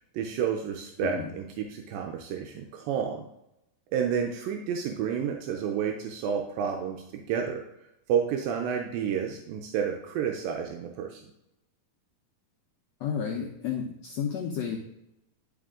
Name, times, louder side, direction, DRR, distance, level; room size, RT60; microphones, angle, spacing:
voice 1, 0.1-3.3 3.9-7.6 8.1-11.2, right 7 dB, 85° right, 2 dB, 2.4 m, -30 dB
voice 2, 13.0-14.8, left 7 dB, 85° left, 0 dB, 1.5 m, -31 dB
11.0 x 4.3 x 3.7 m, 0.85 s
omnidirectional pair, 4.1 m